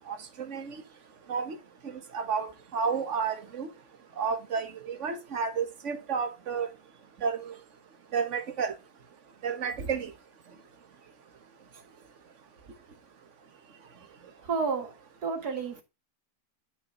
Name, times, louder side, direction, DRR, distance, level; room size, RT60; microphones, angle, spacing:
voice 1, 0.1-0.8 1.3-1.6 1.8-3.7 4.2-6.7 7.2-7.6 8.1-8.7 9.4-10.1, right 6 dB, 50° right, 1.6 m, -31 dB
voice 2, 14.5-14.9 15.2-15.8, right 5 dB, 70° right, 2.4 m, -30 dB
9.9 x 6.3 x 3.9 m
omnidirectional pair, 1.8 m